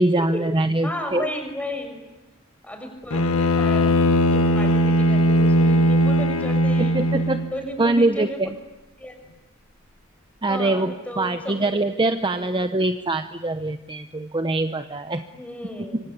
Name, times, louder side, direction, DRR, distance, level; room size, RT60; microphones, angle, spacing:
voice 1, 0.0-1.3 6.8-7.5 7.8-8.5 10.4-15.2, right 2 dB, 25° right, 8 dB, 0.9 m, -23 dB
voice 2, 0.8-2.0 2.6-3.9 4.3-7.0 7.5-8.4 9.0-9.2 10.5-11.8 12.1-12.4 15.3-16.0, left 1 dB, 5° left, 5 dB, 6.2 m, -34 dB
Bowed string instrument, 3.1-7.6, equal, 85° left, 1.5 m, -19 dB
26.5 x 25.5 x 8.5 m, 1.1 s
head